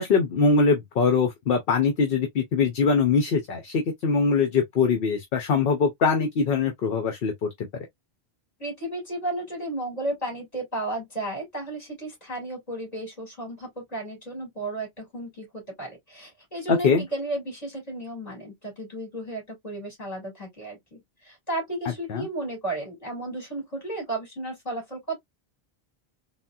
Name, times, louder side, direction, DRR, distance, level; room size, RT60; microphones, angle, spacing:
voice 1, 0.0-7.5 16.7-17.0 22.1-22.3, left 5 dB, 65° left, 0.8 m, -22 dB
voice 2, 8.6-25.2, right 1 dB, 40° left, 2.5 m, -33 dB
4.0 x 2.1 x 2.3 m
omnidirectional pair, 1.1 m